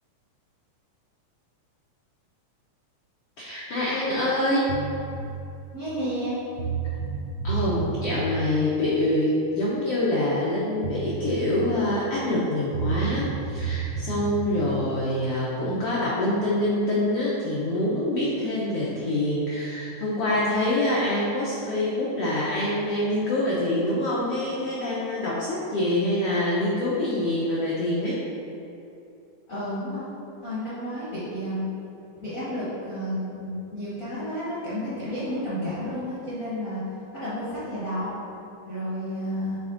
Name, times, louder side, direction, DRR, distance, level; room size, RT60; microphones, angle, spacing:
voice 1, 3.4-4.7 7.4-28.2, left 1 dB, 80° left, -7 dB, 1.3 m, -25 dB
sound 1, 4.7-5.2 6.2-6.3 6.6-8.2 10.5-10.6 10.8-11.5 12.7-14.5, right 6 dB, 80° right, 1.1 m, -30 dB
voice 2, 5.7-6.3 29.5-30.0 30.4-31.6 32.2-36.8 37.1-38.1 38.7-39.6, equal, 60° left, -11 dB, 0.8 m, -31 dB
7.3 x 3.4 x 3.8 m, 2.7 s
omnidirectional pair, 3.5 m